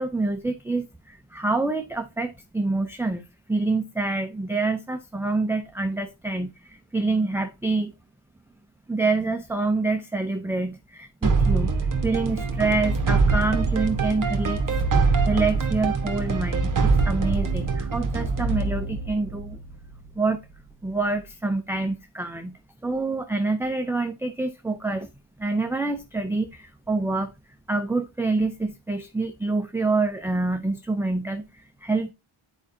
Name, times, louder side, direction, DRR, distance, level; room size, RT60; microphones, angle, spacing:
voice 1, 0.0-3.2 3.5-7.9 8.9-14.6 15.0-19.6 20.1-20.4 20.8-25.1 25.4-27.3 27.7-32.1, right 3 dB, 5° right, 0.5 m, -27 dB
sound 1, 11.2-20.1, right 4 dB, 40° right, 1.3 m, -24 dB
9.2 x 4.9 x 2.7 m
wide cardioid pair, 140°, 50 cm